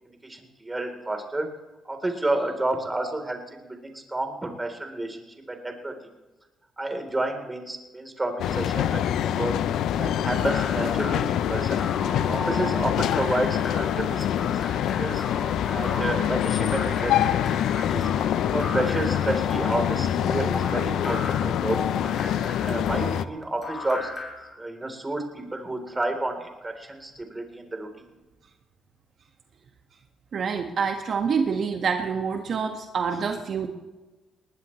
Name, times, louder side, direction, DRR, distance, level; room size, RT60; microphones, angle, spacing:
voice 1, 0.0-1.5 1.8-5.9 6.8-9.6 10.0-11.8 12.3-15.2 15.7-17.3 17.7-18.1 18.5-21.8 22.3-24.1 24.6-28.1, right 2 dB, 15° right, 4 dB, 3.8 m, -30 dB
sound 1, 8.4-23.2, left 10 dB, 80° left, 0.7 m, -25 dB
sound 2, 10.3-24.5, left 2 dB, 30° left, 7.7 m, -37 dB
voice 2, 30.3-33.7, right 6 dB, 55° right, 3 dB, 1.7 m, -26 dB
21.0 x 19.0 x 3.3 m, 1.1 s
cardioid pair, 90°, 0 cm